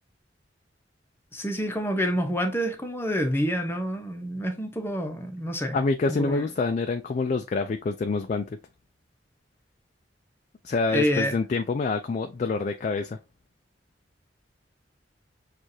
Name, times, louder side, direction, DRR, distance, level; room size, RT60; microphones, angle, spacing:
voice 1, 1.3-5.8 6.1-6.5 10.9-11.3, equal, 15° left, 0.8 m, -27 dB
voice 2, 5.7-8.6 10.6-13.2, left 3 dB, 45° left, 0.3 m, -26 dB
6.3 x 2.5 x 2.7 m
head